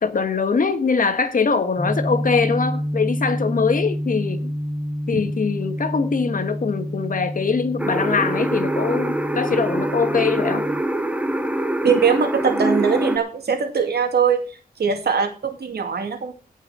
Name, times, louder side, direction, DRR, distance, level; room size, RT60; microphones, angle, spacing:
voice 1, 0.0-4.5 5.1-10.6, left 5 dB, 55° left, 1.5 m, -22 dB
sound 1, 1.8-10.8, equal, 10° left, 2.2 m, -28 dB
sound 2, 7.8-13.2, right 1 dB, 10° right, 1.0 m, -24 dB
voice 2, 11.8-14.4 14.8-16.3, right 6 dB, 85° right, 2.5 m, -21 dB
17.0 x 5.9 x 6.2 m
wide cardioid pair, 145°, 16 cm